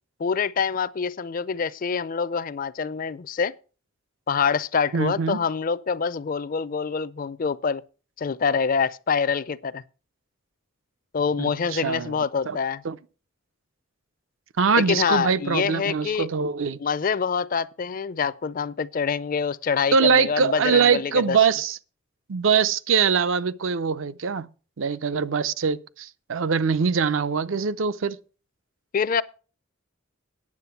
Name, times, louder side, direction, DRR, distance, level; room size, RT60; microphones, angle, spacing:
voice 1, 0.2-3.5 4.3-7.8 8.2-9.8 11.1-12.8 14.8-16.3 16.8-21.4 28.9-29.2, left 6 dB, 45° left, 0.4 m, -25 dB
voice 2, 4.9-5.4 11.4-12.1 12.5-12.6 12.8-13.0 14.6-16.8 19.9-21.8 22.3-24.5 24.8-28.2, right 6 dB, 75° right, 0.6 m, -23 dB
9.6 x 7.6 x 5.8 m
head